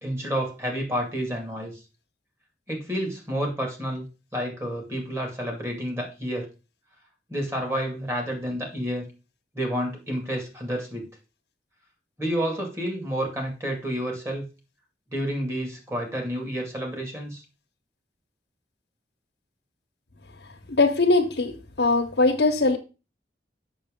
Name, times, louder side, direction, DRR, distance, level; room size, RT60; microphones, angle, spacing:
voice 1, 0.0-1.7 2.7-4.1 4.3-6.5 7.3-9.1 9.5-11.1 12.2-14.5 15.1-17.4, equal, 15° right, 1 dB, 2.4 m, -29 dB
voice 2, 20.7-22.8, left 3 dB, 80° left, 0 dB, 1.2 m, -21 dB
7.6 x 6.5 x 3.8 m, 0.31 s
head